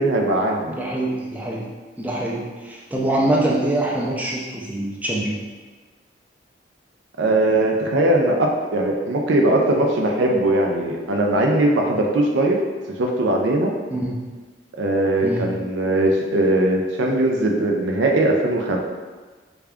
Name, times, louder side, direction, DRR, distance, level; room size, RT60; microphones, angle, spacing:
voice 1, 0.0-0.7 7.2-12.6 13.0-13.7 14.8-18.8, right 1 dB, 80° right, 1 dB, 0.5 m, -20 dB
voice 2, 0.7-1.7 2.0-5.4 13.9-14.3 15.2-15.6, right 1 dB, 10° right, -3 dB, 0.4 m, -24 dB
3.4 x 2.3 x 3.5 m, 1.4 s
head